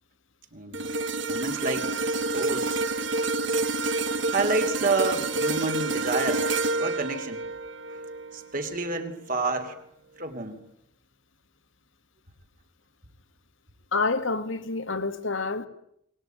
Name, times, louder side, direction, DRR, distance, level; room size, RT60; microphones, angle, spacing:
voice 1, 0.5-0.9 1.3-1.9 2.3-2.8 4.3-6.5 6.8-7.4 8.3-9.8 10.2-10.6, right 3 dB, 40° right, 2.9 m, -29 dB
sound 1, 0.7-9.1 9.5-9.7, right 3 dB, 60° right, 1.5 m, -28 dB
voice 2, 13.9-15.7, left 3 dB, 70° left, 2.0 m, -28 dB
23.0 x 21.5 x 9.2 m
head